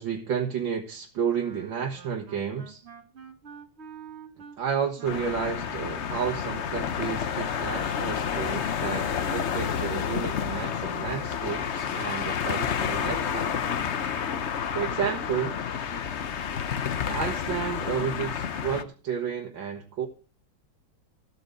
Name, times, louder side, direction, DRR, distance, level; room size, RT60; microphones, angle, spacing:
voice 1, 0.0-2.8 4.6-13.7 14.7-15.6 17.1-20.1, right 7 dB, 65° right, 2.1 m, -31 dB
Wind instrument woodwind instrument, 1.3-7.1, right 7 dB, 40° right, 1.1 m, -48 dB
sound 1, 5.0-18.8, left 7 dB, 65° left, 0.7 m, -30 dB
14.5 x 8.2 x 5.3 m
omnidirectional pair, 2.3 m